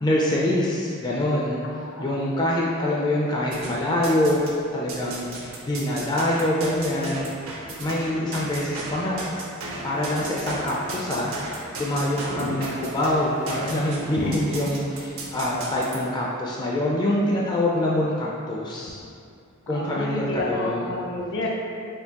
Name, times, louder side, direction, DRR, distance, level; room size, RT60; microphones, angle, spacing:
voice 1, 0.0-1.6 2.0-4.5 4.7-7.3 7.8-9.2 9.8-19.0 19.7-20.9, left 1 dB, 20° left, -4 dB, 0.3 m, -25 dB
voice 2, 1.6-2.1 8.1-8.2 12.3-12.4 14.2-14.3 19.7-21.5, left 2 dB, 60° left, -2 dB, 0.6 m, -30 dB
sound 1, 3.5-4.5 4.9-16.0, right 2 dB, 70° right, 0.7 m, -36 dB
4.3 x 3.0 x 2.8 m, 2.4 s
head